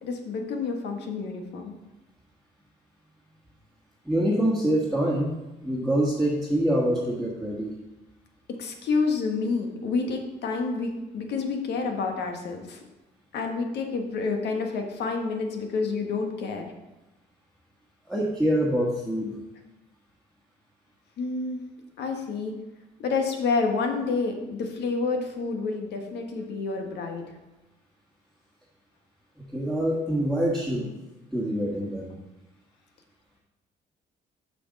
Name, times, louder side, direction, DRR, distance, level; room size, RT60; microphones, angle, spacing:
voice 1, 0.0-1.7 8.6-12.8 13.3-16.7 21.2-21.6 22.0-22.5 23.0-27.2, left 4 dB, 80° left, 4 dB, 1.4 m, -29 dB
voice 2, 4.0-5.4 5.6-7.7 18.1-19.3 29.5-30.9 31.3-32.1, right 1 dB, ahead, -4 dB, 1.6 m, -25 dB
6.7 x 6.1 x 5.3 m, 1.0 s
cardioid pair, 90°, 17 cm